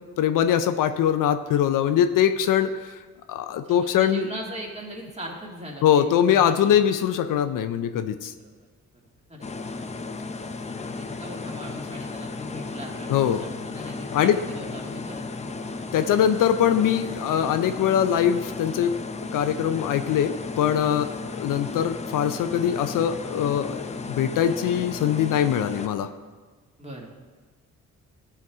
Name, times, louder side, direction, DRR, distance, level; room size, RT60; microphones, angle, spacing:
voice 1, 0.2-3.0 3.3-4.3 5.8-8.3 13.1-13.4 14.1-14.4 15.9-26.1, left 9 dB, 70° left, 9 dB, 0.6 m, -22 dB
voice 2, 3.5-7.0 8.4-8.6 9.3-9.5 10.4-15.8 26.8-27.1, equal, 20° right, -2 dB, 2.1 m, -40 dB
sound 1, 9.4-25.9, left 3 dB, 20° left, 0.5 m, -35 dB
13.0 x 4.7 x 3.5 m, 1.4 s
cardioid pair, 75°, 33 cm